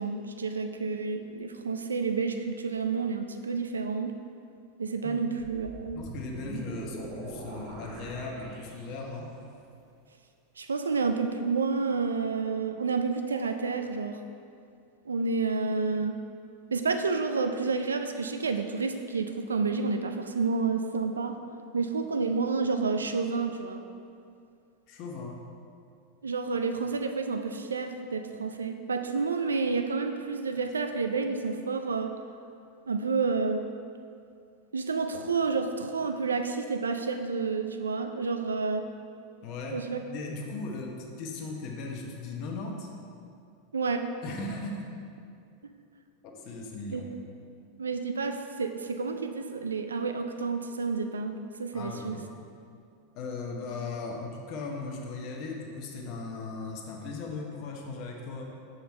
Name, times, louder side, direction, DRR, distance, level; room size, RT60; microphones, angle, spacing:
voice 1, 0.0-4.1 4.8-6.1 10.6-14.2 15.1-16.2 16.7-21.4 21.7-23.9 26.2-32.1 32.9-33.6 34.7-38.9 39.7-40.0 43.7-44.1 46.9-47.0 47.8-52.2, right 4 dB, 90° right, 6 dB, 0.4 m, -30 dB
sound 1, 5.4-9.4, right 2 dB, 55° right, 1.4 m, -42 dB
voice 2, 5.9-9.3 24.9-25.4 39.4-39.8 40.1-42.9 44.2-44.8 46.2-47.1 51.7-52.3 53.1-58.4, left 3 dB, 50° left, 0 dB, 0.9 m, -37 dB
6.7 x 4.0 x 4.3 m, 2.4 s
hypercardioid pair, 95°, 0 cm